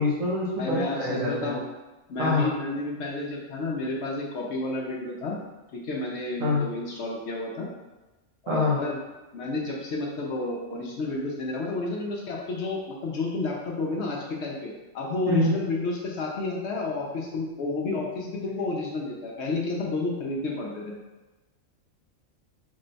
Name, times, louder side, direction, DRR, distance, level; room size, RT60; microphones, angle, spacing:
voice 1, 0.0-1.5 2.2-2.5 6.4-6.7 8.5-8.8 15.3-15.5, left 2 dB, 80° right, -5 dB, 1.4 m, -25 dB
voice 2, 0.6-1.6 2.1-5.4 5.7-7.7 8.4-9.0 9.3-20.9, left 2 dB, 65° left, -1 dB, 0.9 m, -31 dB
3.6 x 2.2 x 3.9 m, 1.1 s
omnidirectional pair, 1.4 m